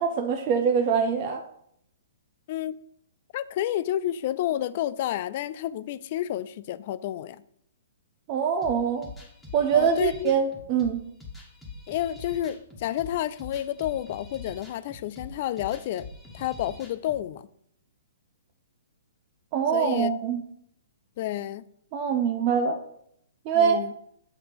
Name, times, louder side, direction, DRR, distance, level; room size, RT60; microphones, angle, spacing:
voice 1, 0.0-1.4 8.3-9.1 9.5-11.0 19.5-20.4 21.9-22.8 23.5-23.8, right 7 dB, 40° right, 0.6 m, -24 dB
voice 2, 3.3-7.4 9.7-10.3 11.9-16.1 16.3-17.4 19.7-20.1 21.2-21.6 23.5-23.9, left 12 dB, 50° left, 0.3 m, -30 dB
sound 1, 8.6-17.2, left 3 dB, 10° left, 1.4 m, -44 dB
8.1 x 2.9 x 5.1 m
hypercardioid pair, 125°, 0 cm